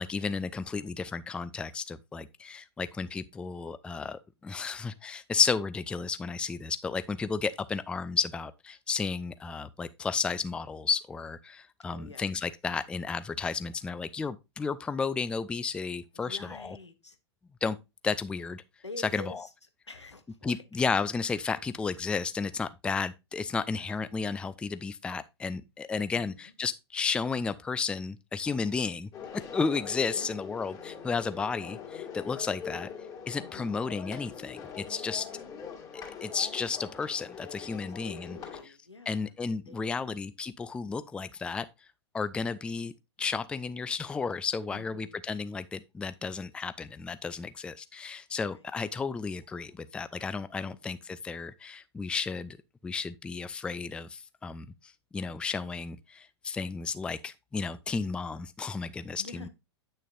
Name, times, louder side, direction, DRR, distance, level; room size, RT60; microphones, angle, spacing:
voice 1, 0.0-16.8 17.6-17.8 18.0-18.6 19.1-19.4 20.4-29.1 29.5-32.9 33.3-35.3 35.9-38.4 39.1-41.7 42.1-42.9 43.2-52.6 52.8-59.5, left 5 dB, 5° left, 0.4 m, -33 dB
voice 2, 11.9-12.3 16.1-17.2 18.8-19.5 19.9-20.6 26.1-26.5 30.1-30.4 33.4-33.8 37.8-39.3 39.7-40.2 44.7-45.2 48.5-48.7 50.7-51.1 59.2-59.5, left 3 dB, 90° left, 1.2 m, -47 dB
sound 1, 29.1-38.6, left 7 dB, 25° left, 2.2 m, -43 dB
9.2 x 6.4 x 2.5 m
figure-of-eight pair, 105°, 14 cm